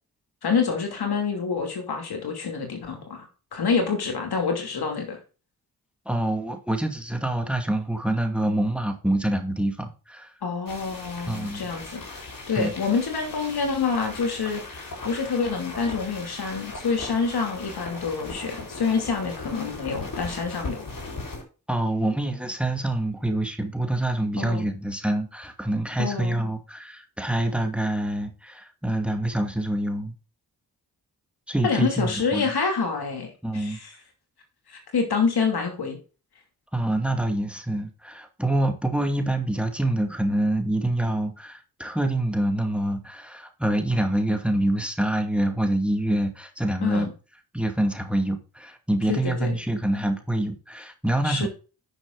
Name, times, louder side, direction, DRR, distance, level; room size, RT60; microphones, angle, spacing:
voice 1, 0.4-5.2 10.4-20.9 24.4-24.7 26.0-26.4 31.6-33.9 34.7-36.0 46.8-47.1 49.1-49.5 51.2-51.5, left 5 dB, 75° left, 2.8 m, -27 dB
voice 2, 6.1-10.3 11.3-11.6 12.6-12.7 21.7-30.1 31.5-32.5 33.4-33.8 36.7-47.1 47.5-51.5, right 1 dB, 5° right, 2.3 m, -26 dB
sound 1, 10.7-21.4, left 3 dB, 55° left, 4.7 m, -38 dB
10.0 x 6.4 x 3.9 m
cardioid pair, 45°, 39 cm